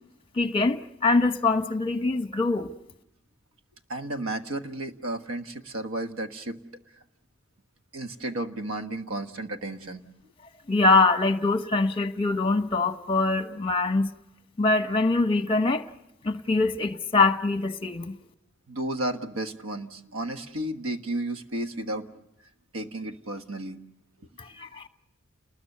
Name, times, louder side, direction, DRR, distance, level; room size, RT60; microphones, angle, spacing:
voice 1, 0.3-2.7 10.7-14.1 14.6-15.8 16.2-18.1 24.4-24.8, left 3 dB, 25° left, 1.1 m, -23 dB
voice 2, 3.9-6.6 7.9-10.0 18.7-22.1 22.7-23.8, right 1 dB, 90° right, 1.5 m, -33 dB
30.0 x 20.5 x 6.7 m
head